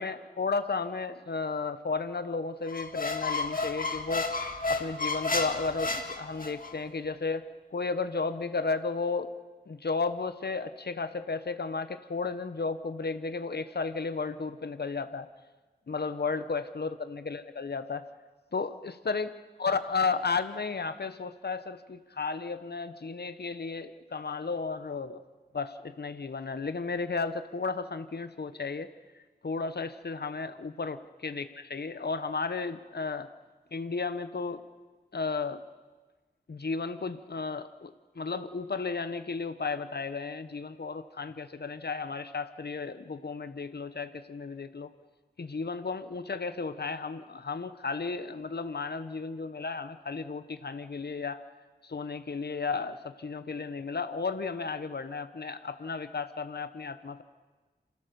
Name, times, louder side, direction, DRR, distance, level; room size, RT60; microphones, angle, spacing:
voice 1, 0.0-4.3 4.7-7.4 7.7-9.3 9.7-15.3 15.9-18.0 18.5-19.3 19.6-25.2 25.5-28.9 29.1-33.3 33.7-34.6 35.1-35.6 36.5-44.9 45.4-51.4 51.8-57.2, left 4 dB, 70° left, 11 dB, 1.1 m, -33 dB
Squeak, 2.7-6.7, left 3 dB, 55° left, 1.7 m, -32 dB
28.0 x 15.5 x 7.0 m, 1.3 s
wide cardioid pair, 75°, 17 cm